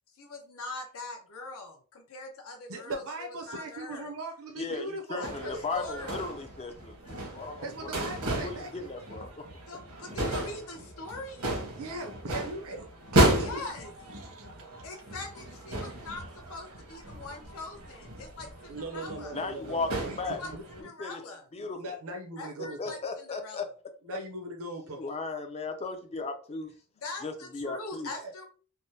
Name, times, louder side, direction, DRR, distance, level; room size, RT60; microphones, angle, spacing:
voice 1, 0.2-3.0 3.4-4.1 5.2-6.3 9.7-11.5 13.4-13.9 14.8-19.4 20.4-21.5 22.4-23.7 27.0-28.5, left 3 dB, 65° left, 0.7 m, -42 dB
voice 2, 2.7-6.3 7.6-8.7 11.7-13.6 14.2-14.5 18.7-20.6 21.8-23.0 24.0-25.0 28.0-28.3, right 2 dB, 65° right, 0.6 m, -39 dB
voice 3, 4.6-7.9 8.4-9.4 19.3-20.4 20.8-21.2 21.5-22.0 22.6-23.7 24.9-26.7 27.2-28.1, left 3 dB, 30° left, 0.5 m, -36 dB
sound 1, 5.2-20.8, right 1 dB, 85° right, 1.1 m, -33 dB
3.4 x 2.0 x 2.7 m
head